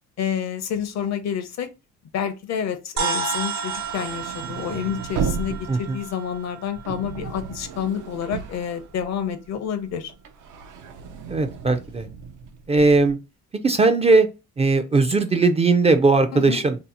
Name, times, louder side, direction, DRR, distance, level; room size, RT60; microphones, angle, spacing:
voice 1, 0.2-1.7 2.1-10.1 16.3-16.6, left 8 dB, 60° left, 0.6 m, -29 dB
sound 1, 3.0-7.6, right 5 dB, 65° right, 0.9 m, -31 dB
sound 2, 3.4-9.5 9.8-13.1, right 6 dB, 80° right, 0.6 m, -34 dB
voice 2, 11.3-12.1 12.7-13.2 13.6-14.3 14.6-16.8, right 3 dB, 20° right, 0.3 m, -18 dB
2.8 x 2.0 x 3.9 m
cardioid pair, 90°, 30 cm